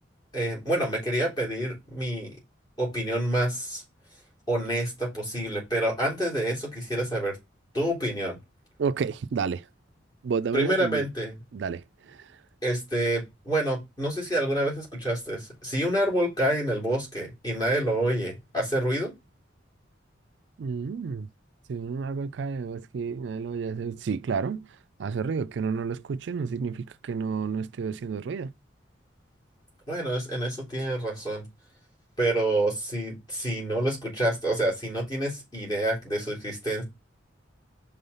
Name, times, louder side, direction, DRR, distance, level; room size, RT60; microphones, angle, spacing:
voice 1, 0.3-2.4 2.8-3.8 4.5-7.4 7.7-8.4 10.5-11.3 12.6-19.1 29.9-31.4 32.2-36.8, right 1 dB, 20° left, 3.3 m, -27 dB
voice 2, 8.8-9.7 10.2-11.1 11.5-12.3 20.6-21.3 21.7-24.7 25.0-28.5, right 5 dB, 70° right, 0.4 m, -30 dB
5.5 x 3.7 x 5.5 m
head